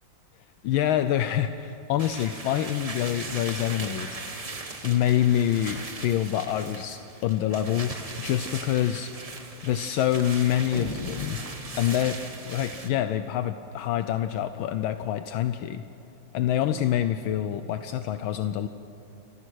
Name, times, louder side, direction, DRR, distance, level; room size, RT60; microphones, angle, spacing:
voice 1, 0.6-4.2 4.8-9.1 9.6-11.4 11.8-15.8 16.3-18.7, left 11 dB, 80° left, 10 dB, 1.4 m, -26 dB
sound 1, 2.0-12.9, right 3 dB, 25° right, 0.8 m, -39 dB
sound 2, 10.7-12.3, left 1 dB, 20° left, 2.2 m, -37 dB
29.0 x 15.0 x 6.2 m, 2.9 s
omnidirectional pair, 2.2 m